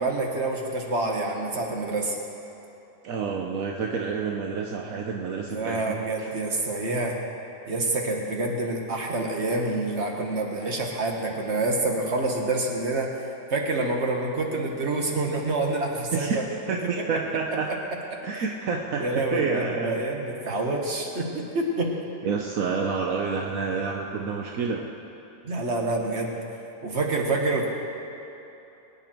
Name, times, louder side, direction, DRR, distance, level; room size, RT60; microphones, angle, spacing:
voice 1, 0.0-2.2 5.5-7.2 7.7-13.2 13.5-16.4 18.4-18.5 19.0-21.9 25.4-26.4 26.8-27.7, right 2 dB, 50° right, 0 dB, 1.9 m, -27 dB
voice 2, 3.0-6.0 16.1-16.4 16.7-17.7 18.2-20.0 20.5-20.6 22.2-24.9, right 5 dB, 75° right, 1 dB, 1.3 m, -29 dB
23.0 x 9.8 x 4.5 m, 3.0 s
omnidirectional pair, 1.5 m